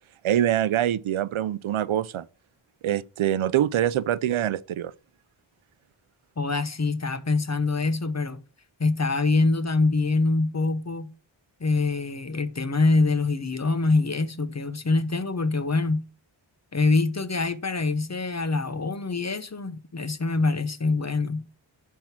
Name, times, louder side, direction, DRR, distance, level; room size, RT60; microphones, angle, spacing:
voice 1, 0.2-2.3 2.8-4.9, right 11 dB, 85° right, 0.6 m, -24 dB
voice 2, 6.4-8.4 8.8-11.1 11.6-16.1 16.7-21.5, left 3 dB, 35° left, 0.9 m, -24 dB
10.5 x 3.7 x 5.8 m
wide cardioid pair, 75°, 47 cm